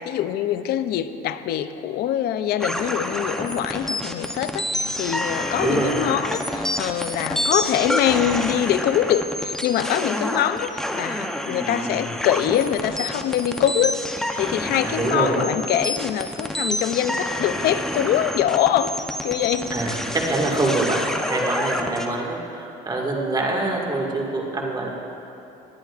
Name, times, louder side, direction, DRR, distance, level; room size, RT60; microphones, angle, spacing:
voice 1, 0.0-19.0 19.2-19.8, left 10 dB, 70° left, 12 dB, 0.5 m, -24 dB
sound 1, 2.6-22.1, left 1 dB, 5° left, 0.7 m, -28 dB
voice 2, 5.6-6.0 14.8-15.4 19.7-21.0 21.3-24.9, right 2 dB, 25° right, -1 dB, 1.9 m, -25 dB
19.0 x 10.5 x 2.5 m, 2.9 s
cardioid pair, 110°, 17 cm